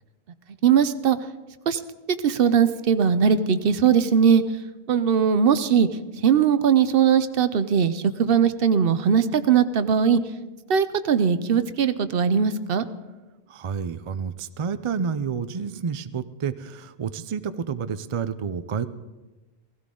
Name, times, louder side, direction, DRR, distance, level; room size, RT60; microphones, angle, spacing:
voice 1, 0.6-1.2 1.7-1.8 2.2-4.4 4.9-5.9 6.2-10.2 10.7-12.8, right 7 dB, 65° right, 13 dB, 0.8 m, -20 dB
voice 2, 13.5-18.9, right 6 dB, 45° right, 13 dB, 0.4 m, -29 dB
16.5 x 16.5 x 3.8 m, 1.1 s
omnidirectional pair, 1.1 m